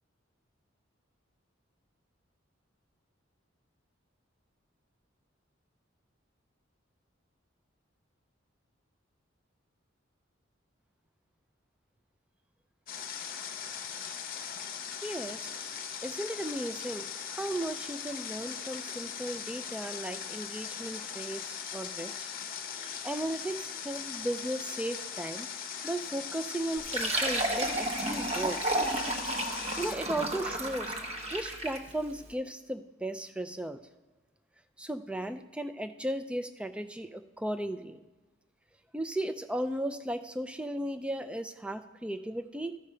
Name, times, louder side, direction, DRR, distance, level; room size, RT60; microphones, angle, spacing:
Water, 12.9-30.0, left 7 dB, 45° left, 0.7 m, -40 dB
voice 1, 15.0-15.5 16.0-17.0 17.4-22.3 22.7-25.5 25.8-28.7 29.8-30.9 31.3-33.8 34.8-38.0 38.9-42.8, right 1 dB, 5° right, 10 dB, 0.3 m, -36 dB
Fill (with liquid), 26.8-31.9, right 1 dB, 30° right, 0.8 m, -32 dB
13.5 x 5.0 x 4.3 m, 1.2 s
head